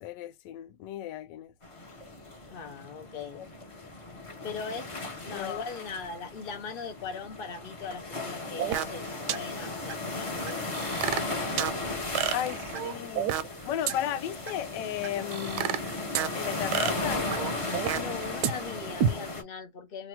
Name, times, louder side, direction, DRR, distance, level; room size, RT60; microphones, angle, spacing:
voice 1, 0.0-1.5 3.3-3.5 5.3-5.6 12.3-13.3 13.6-15.9 16.3-17.3, left 11 dB, 80° left, 1.2 m, -34 dB
sound 1, 1.6-19.4, left 2 dB, 25° left, 0.8 m, -36 dB
voice 2, 2.5-3.4 4.4-4.9 5.2-11.0 11.6-12.3 17.9-20.1, left 5 dB, 55° left, 0.6 m, -40 dB
sound 2, 8.6-9.0 9.3-9.4 9.9-10.0 10.5-11.8 12.2-13.6 13.9-14.0 14.5-14.6 15.0-16.3 16.7-18.2 18.4-18.5 19.0-19.1, right 9 dB, 75° right, 1.2 m, -29 dB
3.1 x 2.6 x 4.4 m
omnidirectional pair, 1.9 m